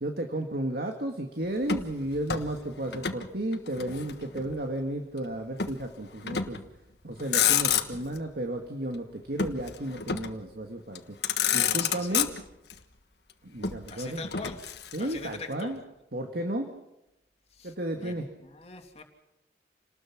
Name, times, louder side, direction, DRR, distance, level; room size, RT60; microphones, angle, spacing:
voice 1, 0.0-6.6 7.0-11.2 11.5-12.3 13.4-14.2 14.9-15.8 16.1-16.7 17.6-18.3, right 1 dB, 60° right, 3 dB, 2.0 m, -33 dB
Motor vehicle (road), 1.6-3.3 3.5-4.6 5.6-5.8 6.3-6.7 7.1-8.2 9.4-10.4 11.0-11.1 11.2-12.7 13.6-15.3, left 8 dB, 70° left, 1.4 m, -29 dB
voice 2, 11.6-12.3 13.9-14.6 15.0-15.7 17.5-19.0, left 3 dB, 35° left, 4 dB, 2.8 m, -42 dB
28.5 x 19.5 x 6.0 m, 0.90 s
head